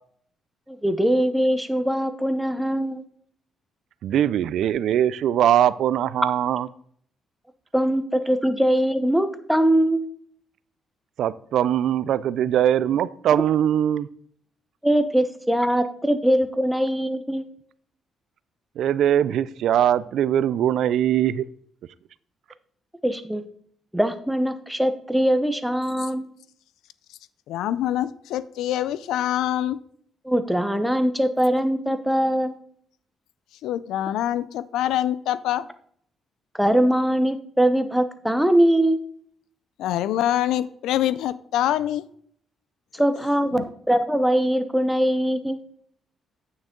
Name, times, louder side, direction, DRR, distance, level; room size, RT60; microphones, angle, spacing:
voice 1, 0.7-3.0 7.7-10.1 14.8-17.5 23.0-23.4 23.9-26.3 30.2-32.5 36.5-39.0 42.9-45.6, right 1 dB, ahead, 9 dB, 0.8 m, -22 dB
voice 2, 4.0-6.7 11.2-14.1 18.8-21.4, right 10 dB, 75° right, 17 dB, 0.3 m, -21 dB
voice 3, 27.5-29.8 33.6-35.7 39.8-42.0 43.6-43.7, left 12 dB, 85° left, 17 dB, 0.4 m, -25 dB
9.0 x 6.2 x 3.8 m, 0.62 s
cardioid pair, 90°, 0 cm